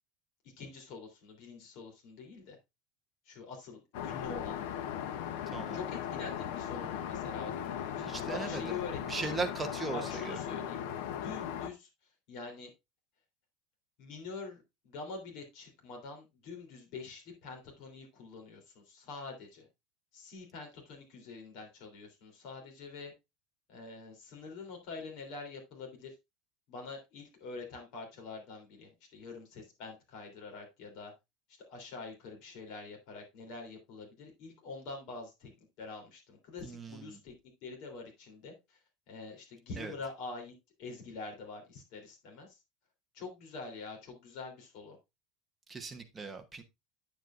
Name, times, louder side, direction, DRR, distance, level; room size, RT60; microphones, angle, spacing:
voice 1, 0.6-2.6 3.2-4.6 5.7-9.3 9.9-10.9 11.2-11.9 12.3-12.7 14.0-19.7 20.1-23.1 23.7-26.1 26.7-31.1 31.7-35.5 35.8-37.3 37.6-38.8 39.1-40.5 40.8-42.6 43.1-45.0, left 4 dB, 50° left, 3.2 m, -45 dB
Aircraft, 3.9-11.7, left 9 dB, 70° left, 0.9 m, -38 dB
voice 2, 5.5-5.8 8.0-8.6 9.1-10.4 36.6-37.2 39.8-39.9 45.7-46.6, right 3 dB, 10° right, 0.9 m, -38 dB
9.1 x 7.5 x 2.5 m
cardioid pair, 175°, 0 cm